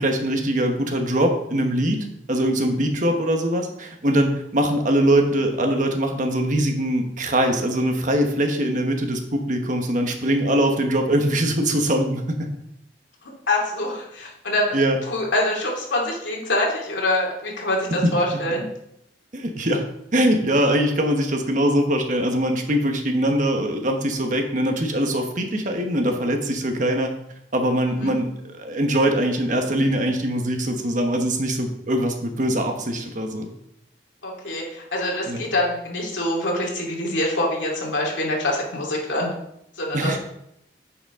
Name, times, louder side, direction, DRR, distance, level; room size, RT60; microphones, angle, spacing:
voice 1, 0.0-12.5 14.7-15.0 19.3-19.8 20.1-27.1 27.5-28.3 28.6-33.5 35.3-35.4 39.9-40.2, right 1 dB, 45° right, 4 dB, 1.2 m, -22 dB
voice 2, 13.5-14.8 15.1-18.6 28.0-28.1 34.2-39.3 39.8-40.2, left 1 dB, 90° left, -2 dB, 2.5 m, -25 dB
9.0 x 6.7 x 3.7 m, 0.78 s
head